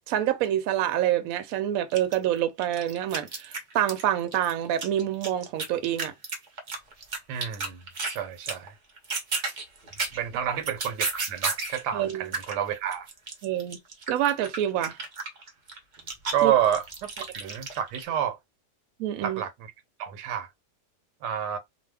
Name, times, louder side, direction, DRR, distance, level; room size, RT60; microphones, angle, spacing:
voice 1, 0.1-6.1 11.9-12.3 13.4-13.8 14.1-15.0 16.4-16.5 17.4-17.5 19.0-19.4, right 11 dB, 70° right, 0.9 m, -27 dB
sound 1, 1.5-1.6 1.9-4.0 4.3-8.2 8.4-8.7 9.0-11.8 12.1-18.0, right 3 dB, 55° right, 0.5 m, -33 dB
voice 2, 7.3-7.8 8.1-8.7 10.1-13.1 16.3-17.1 17.3-18.4 19.2-19.7 20.0-20.5 21.2-21.6, right 10 dB, 90° right, 1.2 m, -29 dB
2.6 x 2.2 x 3.3 m
omnidirectional pair, 1.7 m